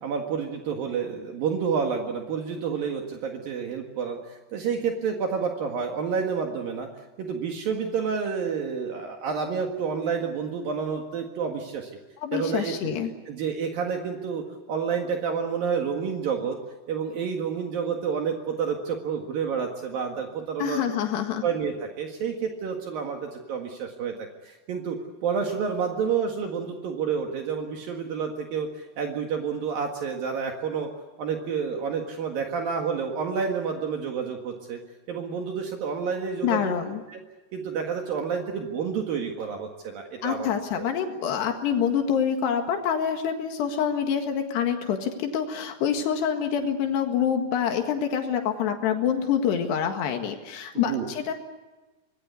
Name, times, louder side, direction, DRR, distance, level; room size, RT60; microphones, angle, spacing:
voice 1, 0.0-6.9 7.2-11.9 12.3-12.9 13.3-16.6 16.9-20.8 21.4-24.2 24.4-25.0 25.2-30.9 31.2-34.8 35.1-36.7 37.1-37.2 37.5-40.5 40.8-40.9 50.8-51.1, right 6 dB, 65° right, 2 dB, 3.4 m, -29 dB
voice 2, 12.2-13.1 20.6-21.4 36.4-37.0 40.2-51.3, left 8 dB, 85° left, 5 dB, 3.9 m, -26 dB
26.0 x 20.0 x 8.3 m, 1.2 s
omnidirectional pair, 4.7 m